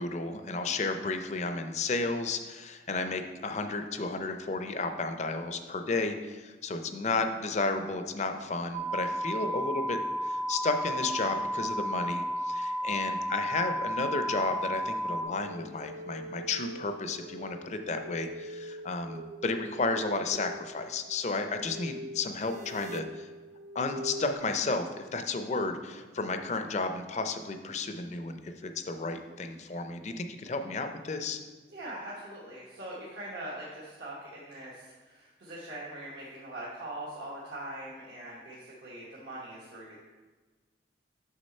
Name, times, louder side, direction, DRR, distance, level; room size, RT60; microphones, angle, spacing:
voice 1, 0.0-23.3 23.7-31.4, left 3 dB, 40° left, 7 dB, 0.5 m, -33 dB
sound 1, 8.7-15.2, equal, 55° right, 1.0 m, -32 dB
sound 2, 15.2-24.3, right 1 dB, 35° right, 0.3 m, -43 dB
voice 2, 31.7-40.0, right 1 dB, 75° right, -6 dB, 1.3 m, -42 dB
6.4 x 6.0 x 4.2 m, 1.3 s
head